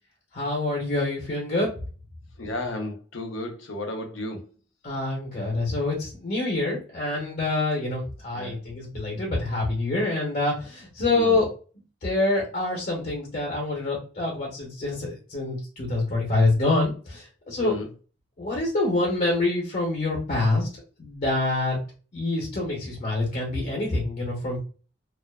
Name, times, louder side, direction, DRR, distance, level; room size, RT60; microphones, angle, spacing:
voice 1, 0.3-1.7 4.8-11.5 12.0-17.7 18.4-20.7 21.0-21.8 22.1-24.6, left 2 dB, 45° left, 0.8 m, -26 dB
voice 2, 2.4-4.5 8.3-8.6 11.1-11.4 17.6-17.9, left 1 dB, 85° left, 0.6 m, -33 dB
2.4 x 2.2 x 2.2 m
head